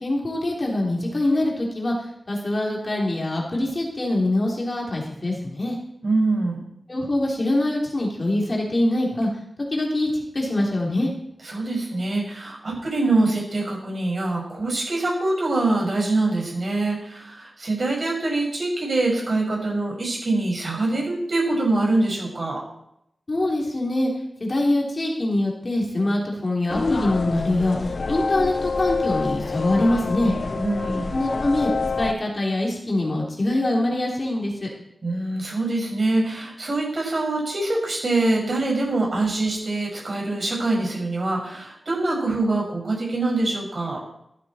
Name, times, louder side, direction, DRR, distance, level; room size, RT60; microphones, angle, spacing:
voice 1, 0.0-1.9 2.3-5.8 6.9-9.3 9.7-11.1 23.3-24.1 24.4-27.8 28.1-30.3 31.1-31.7 32.0-34.7, left 1 dB, 40° left, -2 dB, 3.4 m, -24 dB
voice 2, 6.0-6.6 11.4-22.6 30.6-31.1 35.0-44.0, right 2 dB, 55° right, -2 dB, 5.9 m, -24 dB
sound 1, 26.7-32.1, left 4 dB, 60° left, 0.6 m, -27 dB
13.5 x 12.0 x 4.4 m, 0.77 s
wide cardioid pair, 75°, 0 cm